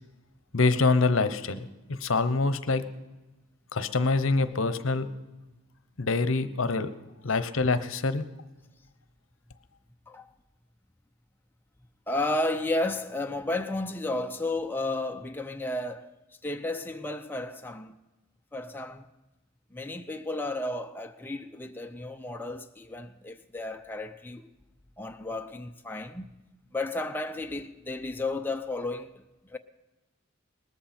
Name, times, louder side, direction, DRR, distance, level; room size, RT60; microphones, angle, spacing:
voice 1, 0.5-2.8 3.7-5.1 6.0-6.9 7.2-8.2, left 3 dB, 65° left, 0.9 m, -25 dB
voice 2, 12.1-16.1 16.4-17.9 18.5-19.1 19.7-24.5 25.0-26.4 26.7-29.2 29.5-29.6, left 2 dB, 10° left, 0.5 m, -33 dB
19.5 x 14.0 x 4.4 m
head